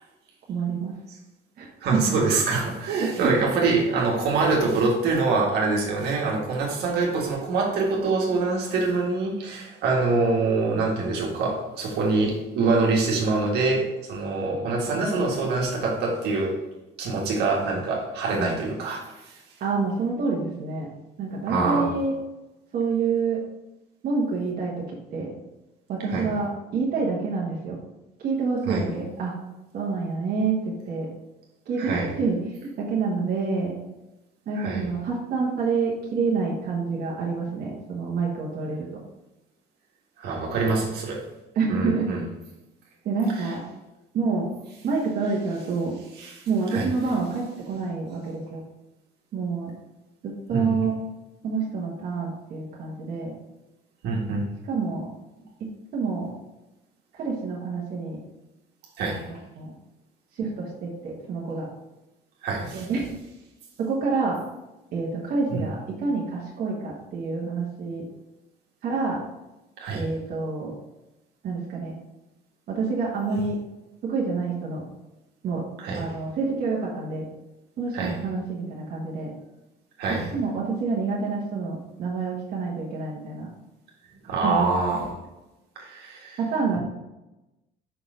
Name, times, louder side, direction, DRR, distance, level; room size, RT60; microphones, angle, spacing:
voice 1, 0.5-0.9 1.6-1.7 1.9-2.0 2.9-3.1 19.6-20.9 21.2-22.1 22.7-23.4 24.0-25.3 25.9-27.8 28.2-29.3 29.7-31.1 31.6-32.4 32.8-33.8 34.5-38.9 41.5-42.1 43.0-43.6 44.1-44.5 44.8-45.9 46.5-48.6 49.3-49.7 50.2-50.9 51.4-53.3 54.7-55.1 55.9-56.3 57.1-58.2 59.2-59.7 60.4-61.7 62.7-63.0 63.8-64.4 64.9-68.0 68.8-69.2 69.9-70.7 71.4-71.9 72.7-73.6 74.0-74.8 75.4-75.6 76.0-77.2 77.8-79.3 80.3-83.5 84.4-84.7 86.4-86.8, right 4 dB, 60° right, -4 dB, 1.5 m, -27 dB
voice 2, 1.8-16.6 17.0-19.1 21.5-21.9 26.1-26.3 28.7-28.8 31.8-32.1 34.6-34.8 40.2-41.3 41.7-42.2 43.4-43.5 46.2-46.4 46.7-46.9 50.5-50.8 54.0-54.5 59.0-59.2 62.4-62.9 65.5-65.6 69.8-70.0 75.8-76.0 77.9-78.2 80.0-80.3 84.2-85.1 85.8-86.4, right 3 dB, 75° right, -1 dB, 1.8 m, -25 dB
5.9 x 3.9 x 5.1 m, 0.98 s
cardioid pair, 110°, 17 cm